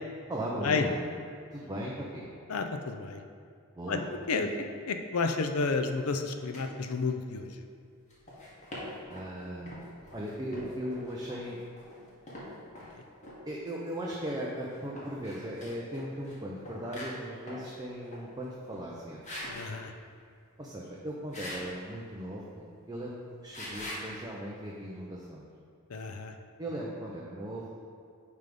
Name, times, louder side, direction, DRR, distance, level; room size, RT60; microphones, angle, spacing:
voice 1, 0.3-1.0 1.5-2.3 3.7-4.1 4.4-4.5 9.1-9.8 10.1-11.6 13.5-19.2 20.6-25.4 26.6-28.0, right 1 dB, 20° right, -4 dB, 0.7 m, -38 dB
voice 2, 2.5-3.2 3.9-4.5 4.9-7.5 19.5-19.9 25.9-26.3, left 4 dB, 70° left, 6 dB, 0.6 m, -31 dB
sound 1, 6.5-6.7 8.1-9.3 9.7-12.9 13.2-13.4 14.7-16.3 16.6-17.7 18.0-18.3 18.7-18.9 19.2-19.7 21.3-21.7 23.5-24.1, left 1 dB, 35° left, 1.7 m, -43 dB
9.4 x 3.5 x 5.3 m, 2.3 s
head